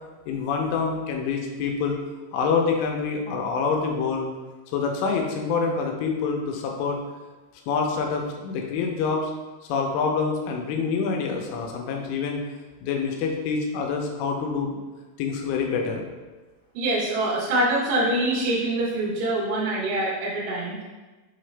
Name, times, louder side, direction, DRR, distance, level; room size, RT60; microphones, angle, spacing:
voice 1, 0.3-2.0 2.3-4.3 4.7-7.0 7.7-9.3 9.7-12.4 12.8-14.8 15.2-16.1, left 5 dB, 85° left, 1 dB, 3.2 m, -26 dB
voice 2, 16.8-20.8, right 1 dB, 85° right, -7 dB, 3.8 m, -25 dB
7.7 x 3.8 x 3.3 m, 1.2 s
omnidirectional pair, 5.5 m